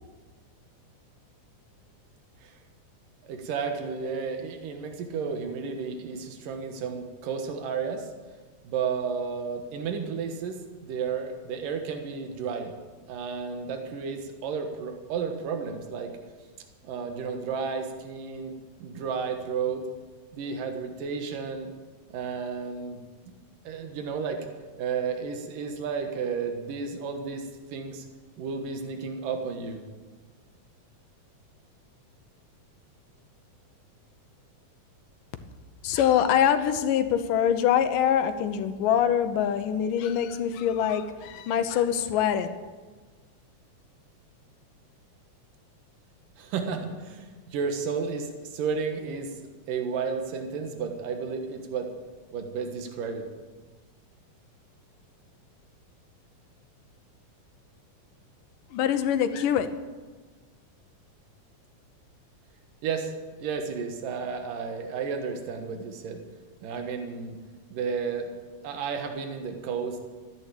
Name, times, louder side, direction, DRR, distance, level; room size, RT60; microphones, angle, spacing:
voice 1, 3.2-8.1 8.6-12.7 13.1-16.1 16.8-18.5 18.8-19.9 20.3-21.7 22.1-23.0 23.3-23.4 23.6-24.5 24.8-28.1 28.4-29.8 46.4-51.9 52.3-53.3 62.8-63.1 63.4-66.2 66.6-67.4 67.7-68.3 68.6-70.0, right 5 dB, 85° right, 5 dB, 3.0 m, -32 dB
voice 2, 35.8-42.5 58.7-59.7, left 9 dB, 80° left, 10 dB, 2.6 m, -24 dB
14.0 x 10.5 x 8.5 m, 1.3 s
omnidirectional pair, 3.7 m